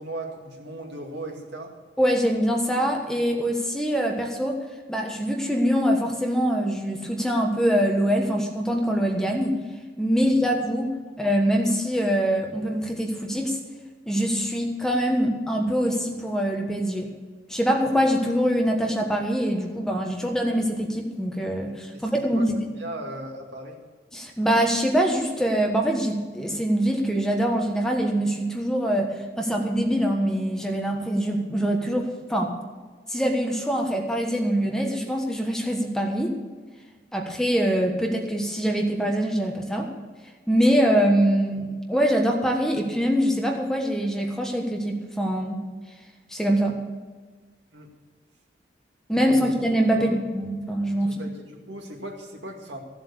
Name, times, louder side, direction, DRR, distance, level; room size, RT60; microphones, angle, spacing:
voice 1, 0.0-1.7 10.3-10.5 21.9-23.8 47.7-47.9 49.1-49.5 49.9-50.2 51.0-52.8, right 1 dB, 80° right, 2 dB, 2.2 m, -38 dB
voice 2, 2.0-4.6 4.9-9.6 10.0-13.6 14.1-17.1 17.5-22.6 24.1-32.5 33.1-36.3 37.1-39.9 40.5-45.6 46.3-46.8 49.1-51.1, equal, 5° left, 1 dB, 1.3 m, -24 dB
15.0 x 7.8 x 6.9 m, 1.4 s
head